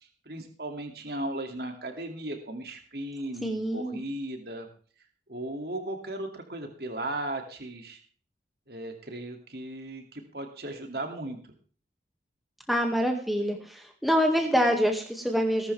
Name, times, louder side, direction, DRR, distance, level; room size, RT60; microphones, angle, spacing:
voice 1, 0.3-4.7 5.3-8.0 8.7-11.4, right 1 dB, 60° right, 4 dB, 2.7 m, -36 dB
voice 2, 3.4-4.0 12.7-15.7, equal, ahead, 2 dB, 2.1 m, -26 dB
20.0 x 12.5 x 3.5 m, 0.41 s
head